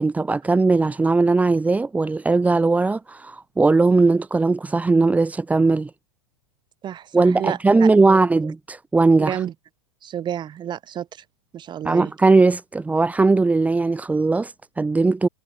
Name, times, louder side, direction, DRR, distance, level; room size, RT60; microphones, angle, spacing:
voice 1, 0.0-5.9 7.1-9.4 11.8-15.3, right 3 dB, 10° right, 1.1 m, -19 dB
voice 2, 6.8-8.2 9.2-9.5 10.0-11.1 11.5-12.1, right 10 dB, 25° right, 5.9 m, -30 dB
hypercardioid pair, 120°, 16 cm